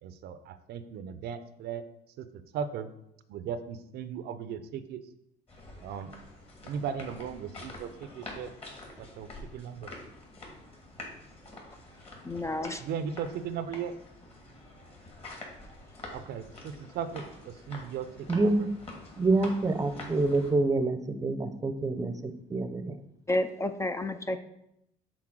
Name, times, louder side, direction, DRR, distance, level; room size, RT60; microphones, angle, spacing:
voice 1, 0.0-1.8 2.2-2.9 3.3-5.0 5.8-6.1 6.6-8.5 9.0-9.9 12.8-13.9 16.1-18.5, right 7 dB, 75° right, 12 dB, 0.6 m, -37 dB
sound 1, 5.5-20.5, left 2 dB, 35° left, 2.1 m, -47 dB
voice 2, 12.2-12.8 23.3-24.4, left 1 dB, 15° left, 9 dB, 0.4 m, -30 dB
voice 3, 18.3-18.7 19.2-23.0, right 2 dB, 20° right, 10 dB, 0.7 m, -27 dB
6.1 x 4.1 x 6.1 m, 0.80 s
cardioid pair, 110°, 17 cm